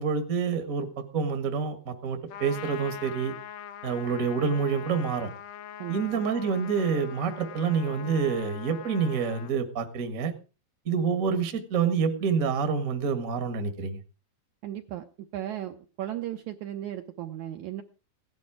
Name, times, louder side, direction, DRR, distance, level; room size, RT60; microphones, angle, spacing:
voice 1, 0.0-3.3 3.8-5.3 5.9-10.3 10.8-14.0, right 6 dB, 40° right, 7 dB, 1.1 m, -27 dB
Trumpet, 2.3-9.5, left 9 dB, 80° left, 1.5 m, -42 dB
voice 2, 5.8-6.2 14.6-15.1 15.3-17.8, right 12 dB, 75° right, 6 dB, 1.8 m, -36 dB
16.5 x 10.5 x 4.8 m, 0.33 s
omnidirectional pair, 4.1 m